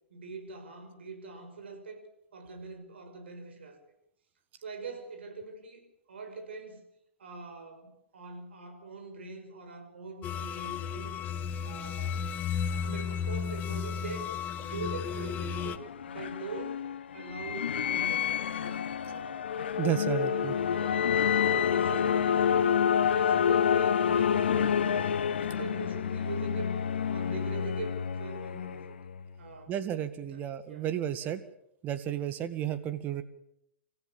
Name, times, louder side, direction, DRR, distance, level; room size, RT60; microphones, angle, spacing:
voice 1, 0.1-2.1 2.3-3.8 4.6-5.8 6.1-6.8 7.2-11.2 11.6-12.3 12.6-14.3 14.6-21.2 21.5-22.8 23.1-25.0 25.4-26.7 27.1-29.0 29.4-29.7 30.2-30.9 31.2-31.4 32.0-32.1, right 3 dB, 65° right, 5 dB, 5.9 m, -43 dB
sound 1, 10.2-15.8, left 7 dB, 25° left, 1.2 m, -34 dB
sound 2, 15.5-29.2, left 8 dB, 65° left, 1.1 m, -28 dB
voice 2, 19.8-20.5 29.7-31.4 31.8-33.2, right 10 dB, 25° right, 11 dB, 1.7 m, -32 dB
27.0 x 15.0 x 7.3 m, 0.77 s
figure-of-eight pair, 110°, 6 cm